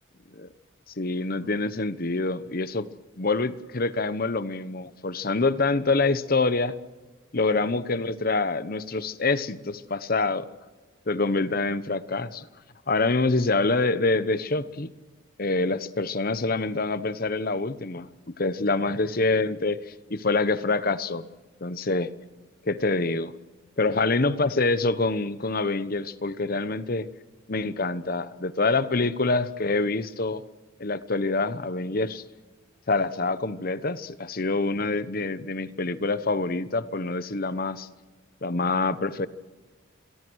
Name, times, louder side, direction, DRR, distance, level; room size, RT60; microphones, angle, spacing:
voice 1, 1.0-2.9 3.2-6.7 7.3-10.5 11.1-12.5 12.9-14.9 15.4-18.1 18.4-21.2 21.6-22.1 22.6-23.3 23.8-27.1 27.5-30.4 30.8-32.2 32.9-37.9 38.4-39.3, left 3 dB, 45° left, 14 dB, 1.0 m, -26 dB
28.0 x 22.5 x 6.4 m, 1.3 s
head